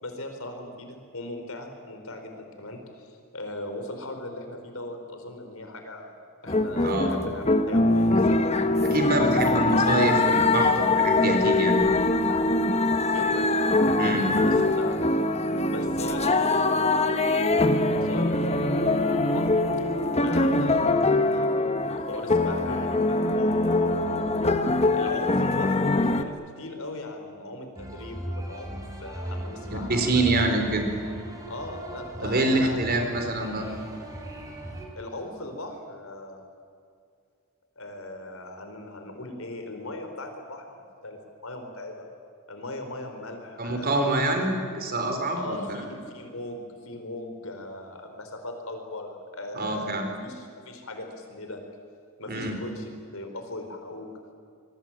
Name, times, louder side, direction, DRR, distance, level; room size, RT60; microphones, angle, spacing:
voice 1, 0.0-6.1 6.4-8.5 9.4-9.6 13.1-13.5 14.0-15.0 15.6-19.5 20.2-24.0 24.9-30.2 31.5-32.9 34.9-36.5 37.8-42.1 42.5-44.2 45.3-51.6 52.2-54.1, left 1 dB, 70° left, 5 dB, 4.7 m, -39 dB
sound 1, 6.5-26.2, left 2 dB, 30° left, 1.2 m, -23 dB
voice 2, 6.8-7.1 8.1-8.2 8.8-11.8 14.0-14.3 29.9-30.9 32.2-33.7 43.6-45.8 49.6-50.1 52.3-52.5, right 2 dB, 45° right, 5 dB, 4.3 m, -26 dB
sound 2, 27.8-34.9, right 1 dB, 15° right, 4.6 m, -38 dB
26.0 x 23.0 x 9.1 m, 2.2 s
head